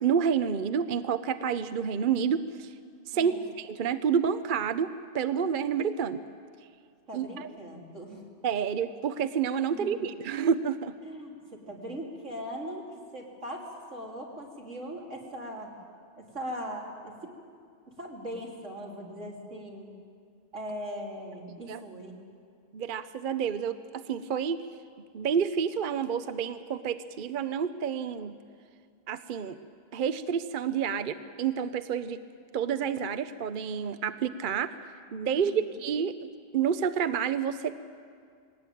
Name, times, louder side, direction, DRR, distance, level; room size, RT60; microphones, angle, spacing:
voice 1, 0.0-2.7 3.1-6.2 7.1-7.5 8.4-10.9 21.7-21.8 22.7-24.6 25.1-28.4 29.1-29.6 29.9-32.2 32.5-34.8 35.1-36.3 36.5-37.8, right 7 dB, 50° right, 12 dB, 0.7 m, -29 dB
voice 2, 3.1-3.5 7.1-8.3 9.7-10.1 11.0-15.7 16.2-17.3 17.9-19.9 20.5-22.2 35.3-35.7, equal, 75° right, -1 dB, 3.5 m, -40 dB
20.0 x 18.0 x 9.2 m, 2.2 s
omnidirectional pair, 1.3 m